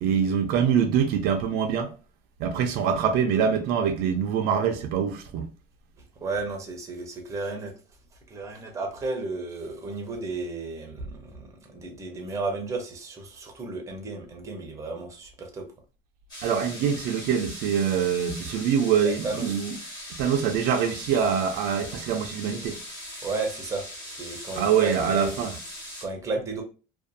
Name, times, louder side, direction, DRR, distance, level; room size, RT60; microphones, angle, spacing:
voice 1, 0.0-1.9 2.4-5.5 16.4-19.8 20.2-22.8 24.6-25.6, right 7 dB, 65° right, 0.4 m, -24 dB
voice 2, 6.2-7.7 8.3-15.6 19.0-19.6 23.2-25.3 26.0-26.6, right 3 dB, 15° right, 0.6 m, -33 dB
sound 1, 16.3-26.0, left 1 dB, 25° left, 1.1 m, -40 dB
2.5 x 2.3 x 2.6 m
cardioid pair, 160°, 17 cm